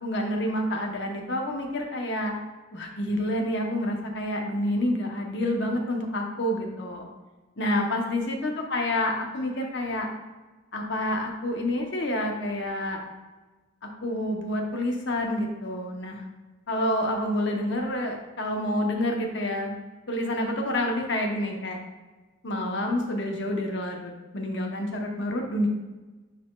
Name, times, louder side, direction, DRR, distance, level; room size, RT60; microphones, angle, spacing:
voice 1, 0.0-2.3 2.7-7.1 7.6-10.1 10.7-13.0 14.0-16.2 16.7-19.8 20.1-21.8 22.4-25.7, left 1 dB, 60° left, 1 dB, 1.0 m, -28 dB
10.5 x 4.2 x 2.4 m, 1.2 s
head